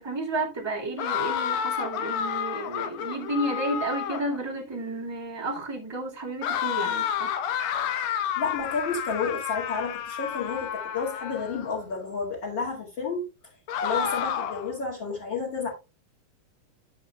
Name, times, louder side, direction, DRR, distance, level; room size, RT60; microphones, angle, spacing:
voice 1, 0.0-7.3, right 2 dB, 25° right, 0.6 m, -32 dB
sound 1, 1.0-4.4 6.4-11.7 13.7-14.7, left 9 dB, 80° left, 2.6 m, -30 dB
voice 2, 8.4-13.2 13.8-15.7, left 4 dB, 40° left, 2.3 m, -31 dB
11.5 x 7.6 x 2.3 m
omnidirectional pair, 4.0 m